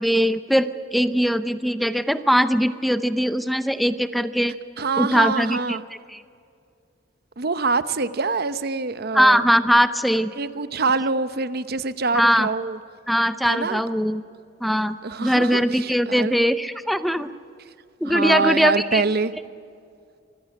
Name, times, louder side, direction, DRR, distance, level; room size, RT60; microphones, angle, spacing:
voice 1, 0.0-4.5 5.0-5.8 6.1-6.2 9.1-10.3 12.1-12.5 13.1-14.2 14.6-17.3 18.0-19.0, equal, ahead, 12 dB, 0.6 m, -21 dB
voice 2, 4.8-5.8 7.4-9.5 10.3-12.8 13.4-13.8 15.0-16.4 18.0-19.3, right 4 dB, 55° right, 14 dB, 0.9 m, -25 dB
25.5 x 15.5 x 9.8 m, 2.4 s
head